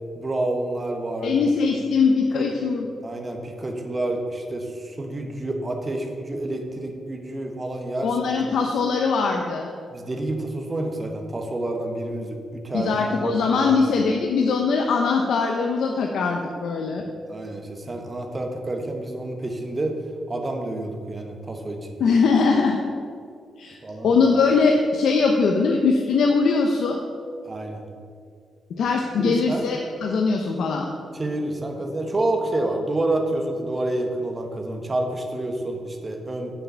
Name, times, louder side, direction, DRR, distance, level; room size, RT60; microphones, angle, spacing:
voice 1, 0.1-1.4 2.3-2.5 3.0-8.1 9.9-12.9 13.2-13.7 17.3-20.0 20.3-22.0 23.8-24.1 27.4-27.8 29.2-29.6 31.1-36.6, right 2 dB, 25° right, 3 dB, 1.3 m, -28 dB
voice 2, 1.2-2.9 8.0-9.7 12.7-17.0 22.0-22.8 23.6-23.8 24.0-27.0 28.8-30.9, left 4 dB, 80° left, 2 dB, 0.8 m, -21 dB
7.3 x 6.9 x 7.0 m, 2.2 s
cardioid pair, 120°, 0 cm